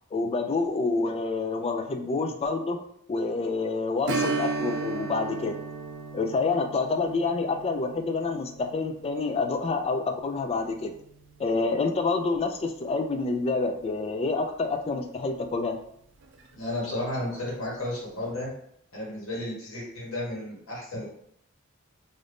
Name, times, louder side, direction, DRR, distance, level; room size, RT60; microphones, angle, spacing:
voice 1, 0.1-2.8 3.1-5.5 6.1-10.9 11.4-15.8, left 3 dB, 30° left, 6 dB, 0.3 m, -28 dB
Strum, 4.1-13.3 13.6-13.7 16.2-16.4 16.8-16.9, right 3 dB, 60° right, 0.4 m, -36 dB
voice 2, 16.5-18.5 18.9-21.1, left 1 dB, 85° left, -4 dB, 1.2 m, -33 dB
2.5 x 2.5 x 3.4 m, 0.70 s
head